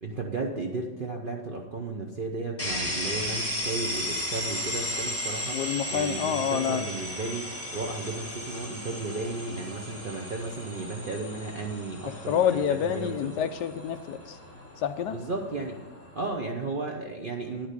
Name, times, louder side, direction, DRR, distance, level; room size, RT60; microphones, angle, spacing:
voice 1, 0.0-5.6 5.9-13.5 15.1-15.8 16.1-17.7, right 3 dB, 50° right, 1 dB, 0.6 m, -34 dB
sound 1, 2.6-16.3, equal, 10° left, 1.8 m, -35 dB
voice 2, 5.5-6.8 12.3-14.4 14.8-15.2, left 9 dB, 75° left, 10 dB, 1.1 m, -27 dB
10.0 x 5.9 x 6.6 m, 1.2 s
omnidirectional pair, 1.9 m